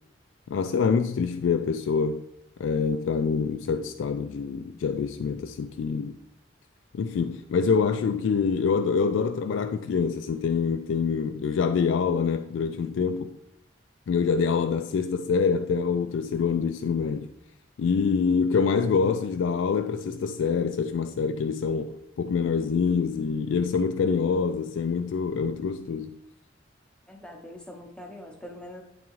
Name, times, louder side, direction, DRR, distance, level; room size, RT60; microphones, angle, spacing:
voice 1, 0.5-2.2 2.6-6.2 6.9-13.4 14.1-17.3 17.8-26.2, left 5 dB, 80° left, 0.3 m, -25 dB
voice 2, 27.1-28.8, left 1 dB, 5° left, 0.8 m, -43 dB
9.9 x 3.5 x 3.0 m
head